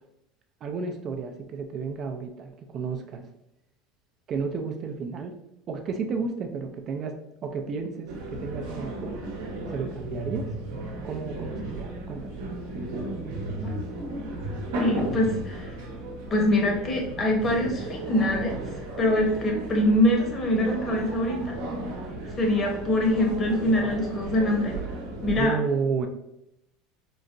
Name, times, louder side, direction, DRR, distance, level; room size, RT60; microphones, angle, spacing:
voice 1, 0.6-3.3 4.3-5.3 5.7-7.2 7.4-9.2 9.7-10.5 11.0-12.4 25.4-26.1, right 5 dB, 40° right, 5 dB, 0.4 m, -32 dB
sound 1, 8.1-25.4, right 2 dB, 80° right, 0.8 m, -34 dB
voice 2, 14.8-15.7 16.3-18.5 19.0-21.5 22.4-24.7 25.2-25.6, left 1 dB, 35° left, 1 dB, 0.9 m, -24 dB
3.8 x 2.1 x 2.5 m, 0.82 s
supercardioid pair, 105°, 0 cm